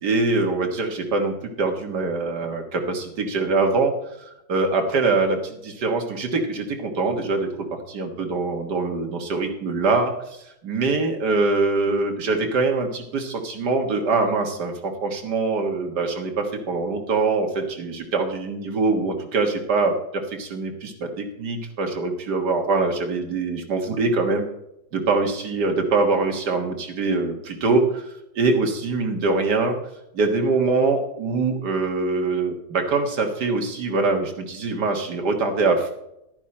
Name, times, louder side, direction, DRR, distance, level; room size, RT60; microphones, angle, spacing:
voice 1, 0.0-24.5 24.9-28.1 28.4-29.8 30.1-35.9, right 3 dB, 60° right, 3 dB, 2.0 m, -23 dB
11.5 x 10.0 x 4.3 m, 0.84 s
omnidirectional pair, 2.1 m